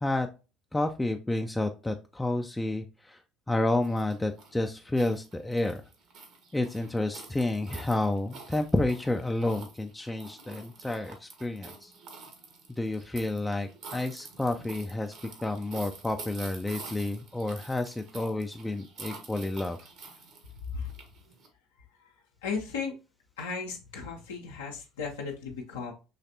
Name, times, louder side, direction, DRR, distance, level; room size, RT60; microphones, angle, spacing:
voice 1, 0.7-3.2 3.5-5.8 6.5-11.9 12.7-15.1 15.4-19.8, left 2 dB, 10° left, 5 dB, 0.4 m, -30 dB
sound 1, 3.8-21.5, right 4 dB, 50° right, 1.2 m, -48 dB
voice 2, 20.6-20.9 21.9-22.1 22.4-22.9 23.4-25.9, left 5 dB, 75° left, -1 dB, 0.7 m, -35 dB
5.8 x 3.2 x 2.7 m, 0.32 s
figure-of-eight pair, 60°, 0 cm